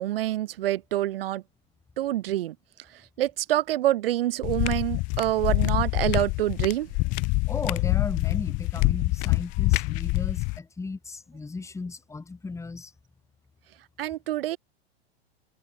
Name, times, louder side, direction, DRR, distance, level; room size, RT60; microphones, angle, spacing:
voice 1, 0.0-1.4 2.0-2.6 2.9-6.9 14.0-14.6, right 14 dB, 65° right, 0.4 m, -26 dB
sound 1, 4.4-10.6, left 27 dB, 25° left, 0.4 m, -25 dB
voice 2, 7.5-12.9, left 3 dB, 10° left, 2.7 m, -35 dB
figure-of-eight pair, 100°, 31 cm